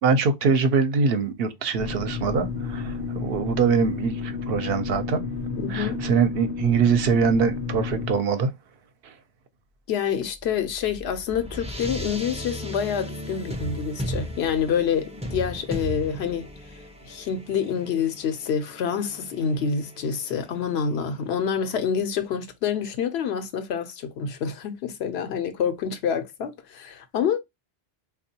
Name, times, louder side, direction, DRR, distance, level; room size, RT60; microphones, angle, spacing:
voice 1, 0.0-5.2 5.7-8.5, right 5 dB, 70° right, 0.8 m, -23 dB
sound 1, 1.8-8.2, left 5 dB, 65° left, 0.7 m, -31 dB
voice 2, 5.6-6.0 9.9-16.5 17.1-27.4, left 7 dB, 90° left, 0.9 m, -27 dB
sound 2, 10.4-21.2, equal, 10° right, 0.3 m, -37 dB
3.5 x 2.3 x 2.7 m
omnidirectional pair, 1.0 m